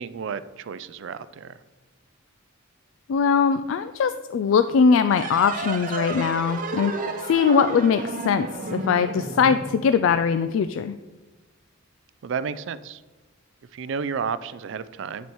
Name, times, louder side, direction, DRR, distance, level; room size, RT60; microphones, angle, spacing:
voice 1, 0.0-1.6 12.2-13.0 13.7-15.3, right 6 dB, 60° right, 15 dB, 0.4 m, -32 dB
voice 2, 3.1-11.0, left 6 dB, 70° left, 11 dB, 0.3 m, -21 dB
sound 1, 5.1-10.3, right 2 dB, 40° right, 0.8 m, -32 dB
9.3 x 7.9 x 3.0 m, 1.2 s
head